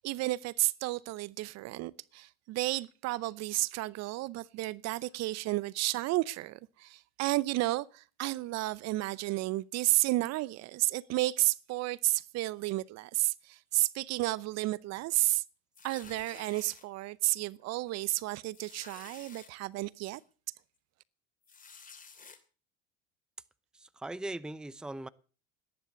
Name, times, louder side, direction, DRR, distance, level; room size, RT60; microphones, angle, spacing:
voice 1, 0.0-15.4 15.8-20.2, right 19 dB, 55° right, 0.8 m, -32 dB
sound 1, 15.7-16.8 17.5-17.6 17.9-18.0 18.5-19.5 20.1-20.2 21.4-22.4, left 5 dB, 25° left, 2.9 m, -52 dB
voice 2, 23.7-25.1, right 1 dB, ahead, 0.7 m, -40 dB
19.0 x 10.5 x 6.4 m
hypercardioid pair, 85°, 31 cm